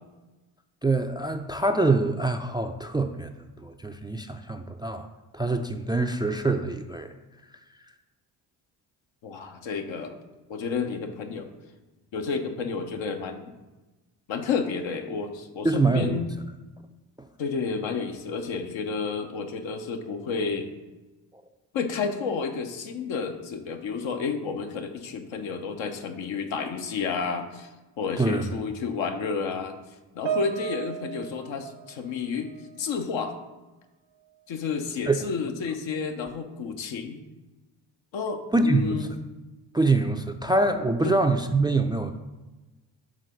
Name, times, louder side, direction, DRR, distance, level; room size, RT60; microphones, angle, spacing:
voice 1, 0.8-3.3 3.6-5.1 5.3-7.1 15.6-16.2 17.2-17.3 28.2-28.5 35.1-35.3 38.5-39.1 39.7-42.1, right 2 dB, 10° right, 7 dB, 0.3 m, -25 dB
voice 2, 9.2-10.2 10.5-11.5 12.1-13.5 14.3-16.2 17.4-20.7 21.7-27.7 28.0-29.8 30.1-32.5 32.8-33.3 34.5-37.2 38.1-39.1 41.0-41.2, left 5 dB, 70° left, 5 dB, 0.9 m, -31 dB
Piano, 30.3-32.9 33.2-33.5 34.3-34.4, right 10 dB, 65° right, 0.7 m, -35 dB
6.3 x 3.7 x 5.2 m, 1.1 s
supercardioid pair, 50°, 48 cm